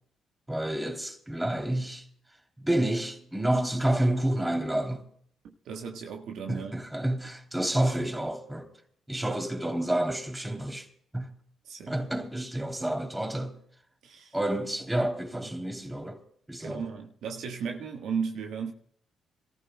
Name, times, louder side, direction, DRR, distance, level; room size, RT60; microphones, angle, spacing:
voice 1, 0.5-2.1 2.6-5.0 6.5-8.7 9.1-10.9 11.1-11.3 11.9-13.6 14.3-16.2 16.5-16.9, right 1 dB, 10° right, 2.9 m, -29 dB
voice 2, 5.4-6.7 11.7-11.9 14.0-14.3 16.6-18.7, right 6 dB, 70° right, 1.3 m, -35 dB
25.5 x 14.5 x 2.2 m
hypercardioid pair, 45°, 0 cm